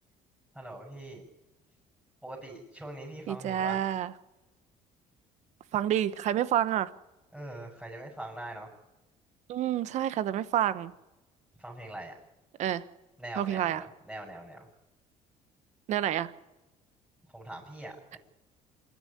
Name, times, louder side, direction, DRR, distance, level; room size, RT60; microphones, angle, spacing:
voice 1, 0.5-1.2 2.2-3.8 7.3-8.7 11.6-12.1 13.2-14.7 17.3-18.2, right 1 dB, 5° right, -4 dB, 6.6 m, -42 dB
voice 2, 3.3-4.1 5.7-6.9 9.5-10.9 12.6-12.8 13.4-13.8 15.9-16.3, right 11 dB, 60° right, 14 dB, 1.1 m, -28 dB
27.0 x 10.5 x 9.9 m, 1.0 s
cardioid pair, 125°, 14 cm